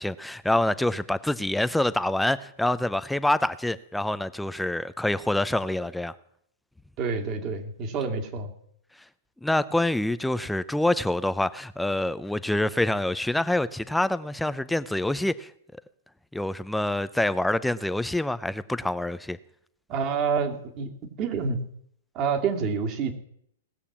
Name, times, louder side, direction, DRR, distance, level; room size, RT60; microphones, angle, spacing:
voice 1, 0.0-6.1 9.4-15.5 16.3-19.4, left 1 dB, 5° left, 0.6 m, -26 dB
voice 2, 7.0-8.5 19.9-20.9 21.2-21.6 22.1-23.1, right 5 dB, 35° right, 2.3 m, -27 dB
18.5 x 6.8 x 7.3 m
hypercardioid pair, 140°, 0 cm